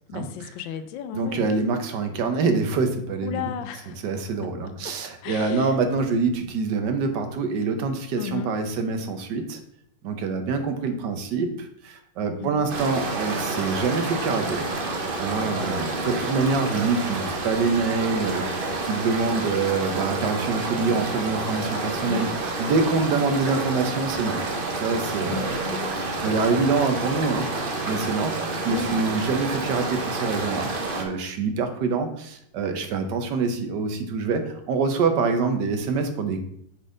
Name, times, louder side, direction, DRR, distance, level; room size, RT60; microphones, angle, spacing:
voice 1, 0.1-1.5 3.2-4.0 4.4-4.5 4.8-5.0 5.2-5.8 8.2-8.5 12.4-12.7 15.3-15.8 22.0-22.4 25.2-26.0 28.6-29.0, left 8 dB, 80° left, 10 dB, 1.4 m, -35 dB
voice 2, 1.1-3.4 4.0-9.6 10.0-14.6 15.2-22.3 22.6-24.4 24.7-25.8 26.2-30.7 31.0-36.4, right 4 dB, 70° right, 7 dB, 1.5 m, -25 dB
sound 1, 12.7-31.0, right 3 dB, 40° right, 0.8 m, -29 dB
6.5 x 4.1 x 4.9 m, 0.70 s
omnidirectional pair, 2.0 m